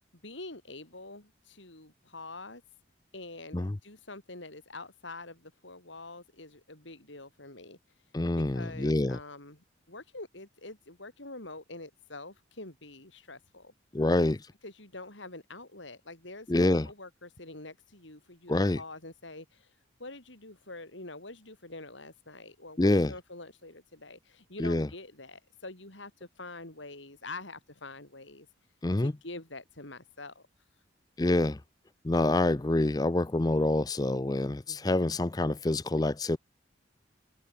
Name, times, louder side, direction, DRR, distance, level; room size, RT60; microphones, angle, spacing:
voice 1, 0.2-2.6 3.1-13.7 14.6-28.5 29.0-30.4 34.7-35.1, left 2 dB, 75° left, 5.8 m, -46 dB
voice 2, 8.1-9.2 13.9-14.4 16.5-16.9 18.5-18.8 22.8-23.1 24.6-24.9 28.8-29.1 31.2-31.6 32.0-36.4, left 2 dB, 20° left, 0.5 m, -26 dB
open air
head